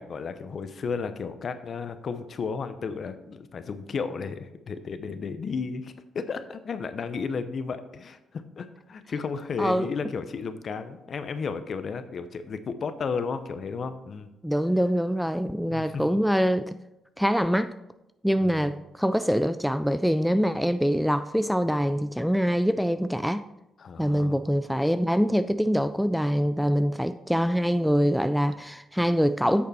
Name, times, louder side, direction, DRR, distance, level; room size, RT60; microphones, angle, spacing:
voice 1, 0.0-14.3 15.7-16.1 18.4-18.7 23.8-24.4, left 5 dB, 50° left, 0.8 m, -33 dB
voice 2, 9.6-9.9 14.4-16.7 17.2-17.7 18.2-23.4 24.0-29.7, equal, ahead, 0.3 m, -24 dB
8.5 x 6.6 x 4.2 m
cardioid pair, 90°, 0 cm